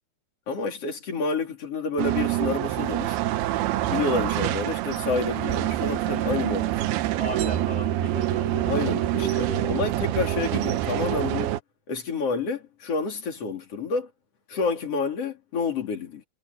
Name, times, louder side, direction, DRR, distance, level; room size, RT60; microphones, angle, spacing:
voice 1, 0.5-3.2 3.9-6.8 8.6-11.5 11.9-14.1 14.5-16.2, left 4 dB, 35° left, 3.9 m, -29 dB
sound 1, 2.0-11.6, right 14 dB, 75° right, 2.8 m, -26 dB
voice 2, 7.2-8.8 9.2-9.7, equal, 50° right, 0.7 m, -36 dB
omnidirectional pair, 5.0 m